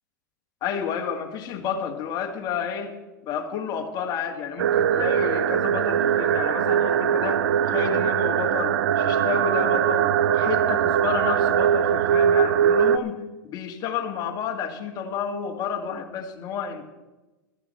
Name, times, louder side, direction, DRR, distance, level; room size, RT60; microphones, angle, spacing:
voice 1, 0.6-2.9 3.2-16.8, left 7 dB, 35° left, 3 dB, 2.1 m, -31 dB
sound 1, 4.6-13.0, right 8 dB, 70° right, 0.7 m, -21 dB
15.5 x 13.0 x 4.4 m, 1.1 s
hypercardioid pair, 120°, 11 cm